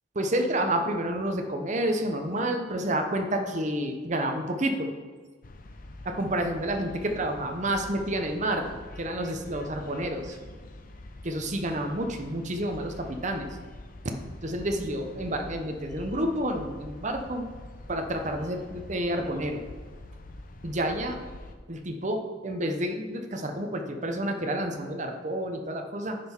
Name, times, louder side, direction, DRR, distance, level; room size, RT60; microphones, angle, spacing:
voice 1, 0.1-4.9 6.0-10.4 11.2-13.5 14.0-14.1 14.4-17.5 17.9-19.7 20.6-21.2 21.7-26.2, right 1 dB, 35° right, 5 dB, 0.9 m, -29 dB
sound 1, 5.4-21.6, left 1 dB, 45° left, 0.7 m, -45 dB
10.0 x 5.8 x 4.5 m, 1.5 s
head